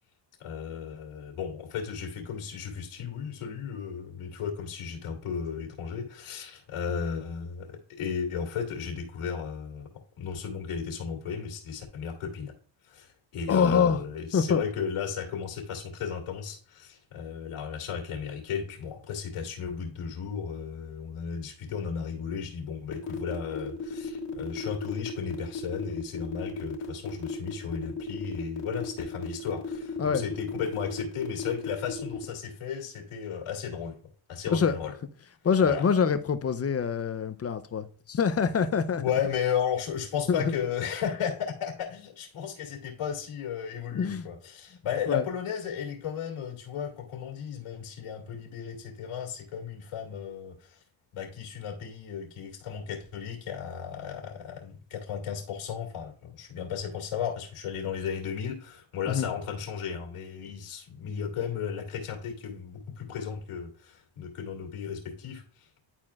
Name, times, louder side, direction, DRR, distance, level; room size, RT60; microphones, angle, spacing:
voice 1, 0.4-9.9 10.2-12.5 12.8-34.0 34.3-34.9 35.6-35.8 39.0-50.8 51.1-65.7, left 7 dB, 75° left, 2.2 m, -34 dB
voice 2, 13.5-14.0 14.3-14.6 30.0-30.2 34.5-34.8 35.4-39.0 40.3-40.6 43.9-44.3 45.1-45.2 59.1-59.3, left 6 dB, 30° left, 0.5 m, -25 dB
sound 1, 22.9-32.2, left 4 dB, 60° left, 1.7 m, -35 dB
10.5 x 4.3 x 2.4 m
cardioid pair, 95°, 50 cm